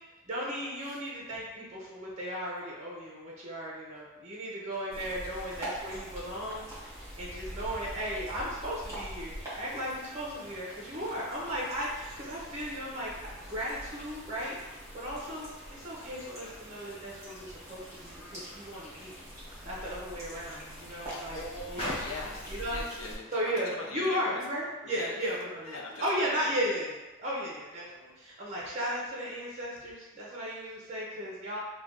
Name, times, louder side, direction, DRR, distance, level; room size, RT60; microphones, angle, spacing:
voice 1, 0.3-14.6 14.9-19.2 19.6-21.4 21.7-22.0 22.5-22.8 23.3-31.6, equal, 35° right, -5 dB, 0.6 m, -36 dB
sound 1, 4.9-23.2, equal, 15° right, 1.3 m, -44 dB
Car, 18.5-24.8 25.6-25.7, left 1 dB, 25° left, 0.8 m, -45 dB
voice 2, 21.1-24.4 24.8-25.4 25.6-26.8 28.6-28.7, left 2 dB, 85° left, -1 dB, 0.6 m, -43 dB
3.2 x 2.2 x 3.7 m, 1.1 s
head